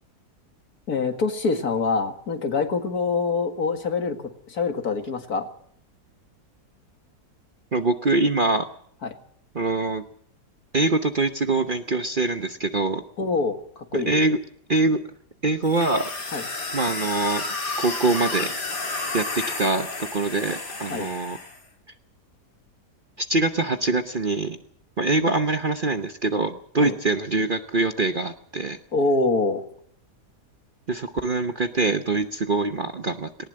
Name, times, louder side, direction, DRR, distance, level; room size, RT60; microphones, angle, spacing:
voice 1, 0.9-4.2 4.5-5.5 9.0-9.2 13.2-14.1 16.3-16.4 20.9-21.1 26.8-27.0 28.9-29.6, left 4 dB, 65° left, 7 dB, 2.3 m, -25 dB
voice 2, 7.7-8.7 9.5-10.0 10.7-13.0 13.9-14.4 14.7-15.0 15.4-16.1 16.7-17.4 17.8-18.5 19.1-21.4 23.2-24.6 25.0-28.8 30.9-33.5, right 3 dB, 40° right, 8 dB, 0.9 m, -24 dB
sound 1, 15.6-21.6, left 3 dB, 85° left, 3.7 m, -31 dB
19.0 x 19.0 x 7.5 m, 0.63 s
omnidirectional pair, 1.7 m